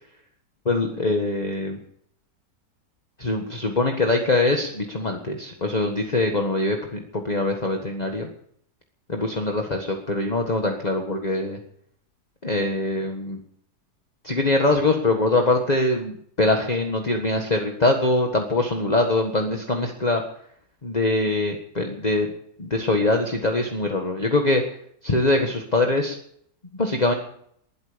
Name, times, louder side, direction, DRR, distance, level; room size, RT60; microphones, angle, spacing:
voice 1, 0.6-1.8 3.2-8.3 9.1-11.6 12.4-13.4 14.2-20.2 20.8-22.3 22.6-24.6 25.0-26.2 26.8-27.1, left 2 dB, 25° left, 3 dB, 1.6 m, -23 dB
21.0 x 11.5 x 5.1 m, 0.67 s
omnidirectional pair, 1.8 m